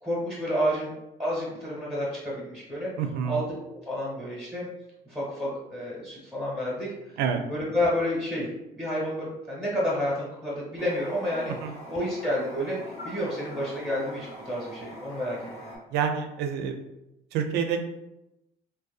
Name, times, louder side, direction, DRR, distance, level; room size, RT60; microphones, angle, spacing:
voice 1, 0.0-2.9 3.3-3.4 3.9-4.7 5.0-6.9 7.5-11.6 11.9-15.7, equal, 5° right, -7 dB, 0.8 m, -30 dB
voice 2, 3.0-3.4 7.2-7.4 11.6-11.7 15.9-16.7 17.3-17.8, right 7 dB, 85° right, 5 dB, 0.4 m, -27 dB
Toilet flush, 10.8-15.8, left 1 dB, 80° left, 1.0 m, -43 dB
2.7 x 2.1 x 2.3 m, 0.90 s
cardioid pair, 110°, 17 cm